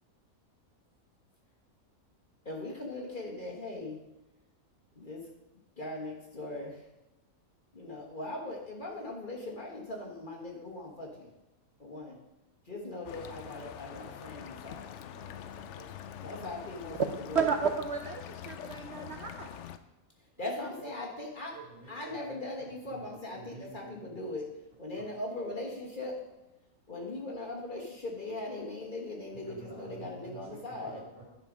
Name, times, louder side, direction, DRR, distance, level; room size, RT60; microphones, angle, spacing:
voice 1, 2.4-4.0 4.9-5.3 5.8-6.8 7.7-11.3 11.8-12.2 12.6-14.9 16.2-17.5 20.4-26.2 26.9-31.1, left 2 dB, 35° left, -1 dB, 1.5 m, -40 dB
sound 1, 13.0-19.8, left 9 dB, 65° left, 0.8 m, -45 dB
voice 2, 15.1-16.5 21.5-22.2 22.9-24.0 25.0-25.1 29.4-31.2, right 2 dB, 35° right, -5 dB, 3.0 m, -50 dB
voice 3, 17.1-19.6, right 6 dB, 60° right, 5 dB, 0.7 m, -32 dB
11.5 x 5.6 x 5.1 m, 0.99 s
omnidirectional pair, 1.5 m